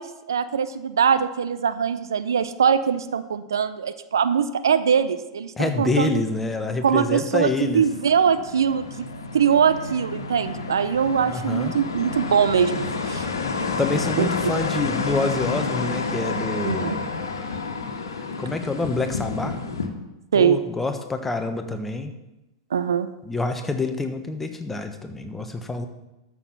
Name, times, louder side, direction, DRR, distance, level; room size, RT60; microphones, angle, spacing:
voice 1, 0.0-6.2 6.8-9.1 9.3-13.3 14.2-14.5 16.6-17.0 20.3-20.6 22.7-23.1, right 7 dB, 70° right, 13 dB, 0.6 m, -22 dB
voice 2, 5.6-7.8 11.3-11.7 13.8-17.1 18.4-19.6 20.3-22.1 23.3-25.9, left 3 dB, 10° left, 7 dB, 1.2 m, -27 dB
sound 1, 6.4-19.9, left 4 dB, 75° left, 1.5 m, -30 dB
13.0 x 6.5 x 5.6 m, 0.99 s
figure-of-eight pair, 95°, 2 cm